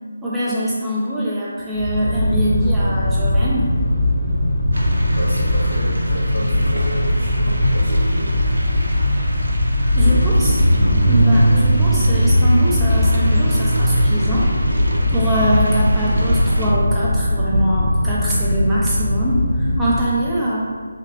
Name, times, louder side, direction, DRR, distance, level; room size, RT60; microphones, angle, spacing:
voice 1, 0.2-3.7 10.0-10.7 11.1-14.5 15.1-20.6, right 1 dB, 5° right, -9 dB, 0.4 m, -23 dB
sound 1, 1.8-20.1, left 1 dB, 40° left, 1.1 m, -18 dB
sound 2, 4.7-16.7, right 1 dB, 70° right, 0.5 m, -30 dB
voice 2, 5.1-8.3, equal, 80° left, -6 dB, 1.2 m, -30 dB
2.9 x 2.5 x 3.0 m, 1.5 s
figure-of-eight pair, 155°, 0 cm